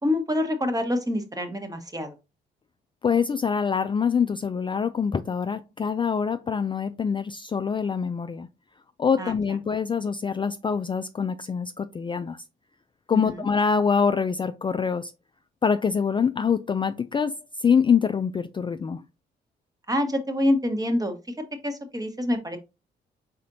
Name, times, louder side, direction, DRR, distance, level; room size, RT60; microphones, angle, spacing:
voice 1, 0.0-2.1 9.2-9.3 13.1-13.5 19.9-21.1 21.6-22.6, left 1 dB, 20° right, 1.2 m, -26 dB
voice 2, 3.0-8.5 9.0-12.4 13.1-15.1 15.6-19.0, left 6 dB, 25° left, 0.3 m, -25 dB
4.2 x 4.1 x 2.6 m
supercardioid pair, 55°, 20 cm